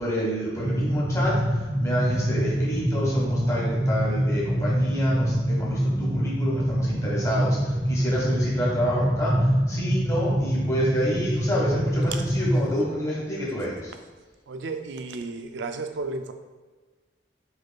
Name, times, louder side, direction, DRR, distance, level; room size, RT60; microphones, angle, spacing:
voice 1, 0.0-13.9, equal, 20° left, -6 dB, 1.4 m, -28 dB
sound 1, 0.6-12.7, equal, 10° right, 0.6 m, -25 dB
voice 2, 14.5-16.3, right 3 dB, 80° right, 7 dB, 0.4 m, -33 dB
4.8 x 4.4 x 2.3 m, 1.3 s
head